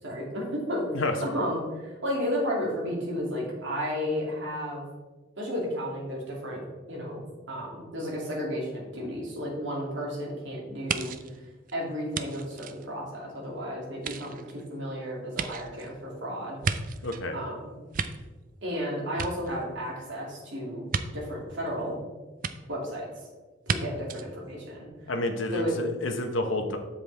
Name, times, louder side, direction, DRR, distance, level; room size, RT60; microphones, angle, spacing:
voice 1, 0.0-0.8 1.2-4.8 5.4-6.6 6.9-11.1 11.7-16.6 17.3-17.7 18.6-22.0 22.7-23.1 23.7-25.1 25.5-25.7, equal, 70° right, -3 dB, 2.6 m, -33 dB
sound 1, 10.9-13.5 13.9-17.3 17.7-18.8 19.1-20.0 20.9-21.1 22.4-22.5 23.6-23.8 24.1-24.3, right 6 dB, 45° right, 0.4 m, -33 dB
voice 2, 17.0-17.3 25.1-26.8, left 2 dB, 75° left, 5 dB, 1.0 m, -29 dB
7.9 x 7.1 x 3.4 m, 1.2 s
head